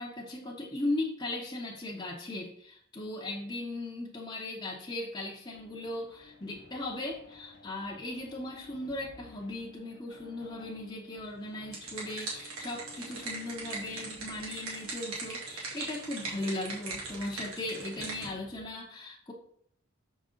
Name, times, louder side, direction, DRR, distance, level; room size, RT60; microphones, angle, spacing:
voice 1, 0.0-19.3, left 2 dB, 20° left, -4 dB, 0.8 m, -37 dB
sound 1, 5.5-18.7, left 3 dB, 60° left, 0.8 m, -55 dB
sound 2, 11.4-18.3, right 3 dB, 80° right, 2.4 m, -40 dB
6.5 x 5.2 x 3.7 m, 0.66 s
head